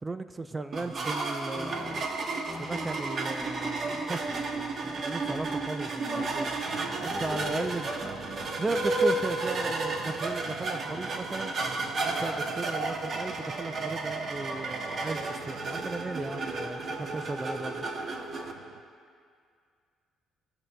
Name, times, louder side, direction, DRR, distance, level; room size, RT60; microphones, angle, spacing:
voice 1, 0.0-2.0 2.6-4.4 4.8-6.5 6.8-7.9 8.6-11.5 12.0-17.9, right 2 dB, 25° right, 10 dB, 0.4 m, -36 dB
sound 1, 0.7-18.5, right 3 dB, 50° right, 0.8 m, -32 dB
sound 2, 1.6-8.9, left 1 dB, ahead, 0.9 m, -46 dB
voice 2, 6.0-6.4 6.7-6.8 7.3-8.6, left 7 dB, 60° left, 6 dB, 0.7 m, -45 dB
sound 3, 6.7-18.8, right 8 dB, 85° right, 0.4 m, -46 dB
18.5 x 6.2 x 2.2 m, 2.2 s
supercardioid pair, 75°, 0 cm